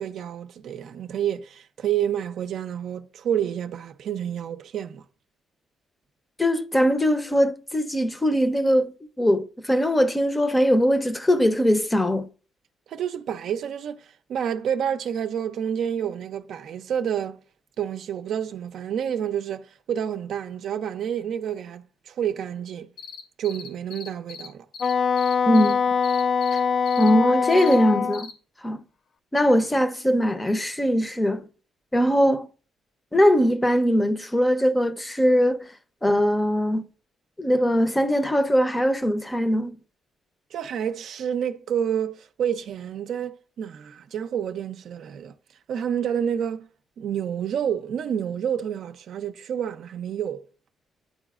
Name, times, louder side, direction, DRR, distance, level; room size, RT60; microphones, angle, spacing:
voice 1, 0.0-5.0 12.9-17.4 17.8-22.9 23.4-24.6 40.5-45.3 45.7-46.7 47.0-50.5, right 9 dB, 70° right, 0.4 m, -29 dB
voice 2, 6.4-8.9 9.2-12.3 25.5-25.7 26.5-26.6 27.0-28.3 28.6-28.8 29.3-31.4 31.9-32.5 33.1-35.7 36.0-36.8 37.4-39.8, equal, 15° left, 0.6 m, -21 dB
sound 1, 23.0-24.5 24.7-25.7 26.0-26.6 26.9-27.1 27.5-27.7 28.1-28.3, left 6 dB, 80° left, 1.5 m, -39 dB
Wind instrument woodwind instrument, 24.8-28.2, left 6 dB, 50° left, 0.3 m, -23 dB
10.0 x 3.9 x 2.4 m
cardioid pair, 90°, 0 cm